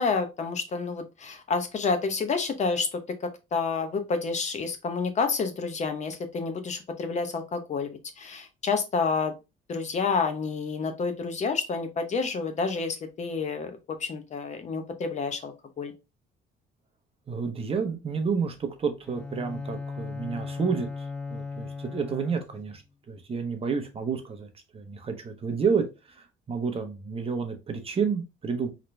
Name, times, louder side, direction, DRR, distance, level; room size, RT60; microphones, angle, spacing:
voice 1, 0.0-7.9 8.2-9.3 9.7-15.9, left 4 dB, 40° left, 7 dB, 0.8 m, -29 dB
voice 2, 17.3-22.8 23.1-28.7, right 5 dB, 30° right, 6 dB, 0.9 m, -30 dB
Bowed string instrument, 19.0-22.8, left 4 dB, 5° left, 0.5 m, -37 dB
4.0 x 3.1 x 3.3 m, 0.26 s
cardioid pair, 120°, 18 cm